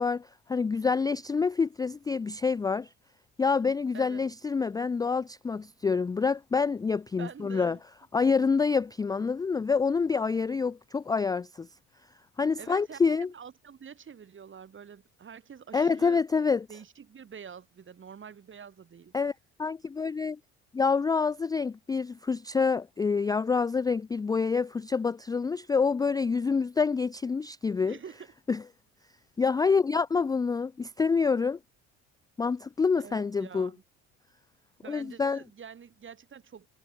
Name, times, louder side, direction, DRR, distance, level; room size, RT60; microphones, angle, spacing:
voice 1, 0.0-2.9 3.4-7.8 8.1-11.7 12.4-13.3 15.7-16.7 19.1-19.3 19.6-20.4 20.7-28.0 28.5-28.6 29.4-31.6 32.4-33.7 34.9-35.4, left 5 dB, 15° left, 0.3 m, -27 dB
voice 2, 7.2-7.8 12.6-16.2 16.7-19.1 27.8-28.3 33.0-33.8 34.8-36.7, right 7 dB, 40° right, 6.2 m, -46 dB
supercardioid pair, 90°, 31 cm